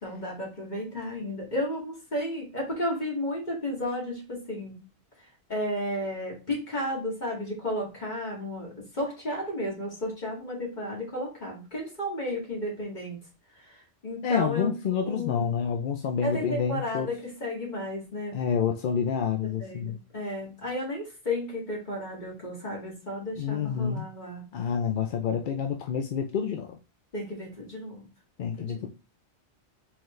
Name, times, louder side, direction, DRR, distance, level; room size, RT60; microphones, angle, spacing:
voice 1, 0.0-4.8 5.5-13.2 14.0-14.7 15.1-15.4 16.2-18.4 19.6-24.4 27.1-28.1 28.4-28.9, left 1 dB, 40° left, 2.2 m, -33 dB
voice 2, 14.2-17.1 18.3-20.0 23.4-24.1 24.5-26.8 28.4-28.9, left 7 dB, 60° left, 0.6 m, -28 dB
4.4 x 3.9 x 3.1 m
omnidirectional pair, 1.2 m